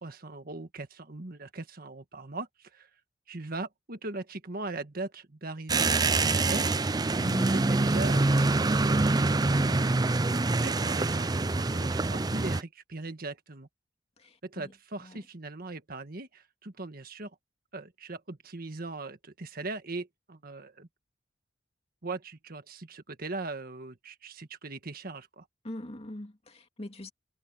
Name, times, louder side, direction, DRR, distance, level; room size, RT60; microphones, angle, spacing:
voice 1, 0.0-2.9 3.3-6.7 7.4-8.9 10.5-13.7 14.4-17.3 17.7-20.9 22.0-25.4, right 2 dB, 55° right, 1.6 m, -40 dB
sound 1, 5.7-12.6, right 3 dB, 20° right, 0.5 m, -25 dB
voice 2, 7.2-8.0 14.2-14.7 15.0-15.2 25.6-27.1, left 1 dB, 35° left, 2.3 m, -43 dB
head